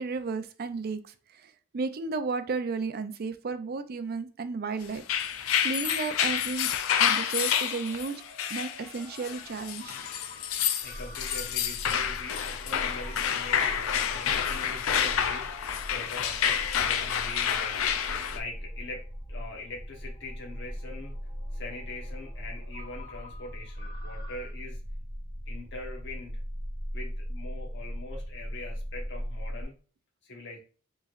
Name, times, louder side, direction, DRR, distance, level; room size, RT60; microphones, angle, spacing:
voice 1, 0.0-6.7 7.0-8.2 8.5-10.0, right 4 dB, 50° right, 0.4 m, -33 dB
sound 1, 4.9-18.4, left 8 dB, 80° left, 0.5 m, -29 dB
Ringtone, 4.9-24.5, left 2 dB, 25° left, 1.2 m, -52 dB
voice 2, 10.8-15.5 15.9-17.9 18.3-19.0 19.3-21.2 21.5-24.8 25.5-26.4 26.9-29.8 30.2-30.6, left 2 dB, 60° left, 1.1 m, -42 dB
sound 2, 10.8-29.6, equal, 15° right, 0.8 m, -39 dB
4.7 x 3.1 x 2.5 m
head